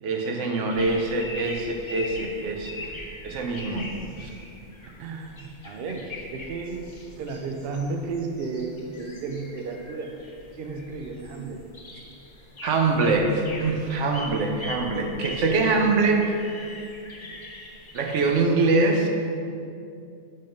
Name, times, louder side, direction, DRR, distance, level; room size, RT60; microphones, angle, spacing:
voice 1, 0.0-2.8 3.2-3.9 4.2-4.3 12.6-16.3 17.9-19.1, right 3 dB, 85° right, 2 dB, 1.0 m, -24 dB
sound 1, 0.7-18.4, left 2 dB, 35° left, 0.5 m, -42 dB
voice 2, 4.8-6.8 7.2-10.1 10.5-11.6, right 4 dB, 65° right, 4 dB, 0.7 m, -33 dB
5.4 x 3.7 x 5.2 m, 2.5 s
omnidirectional pair, 1.2 m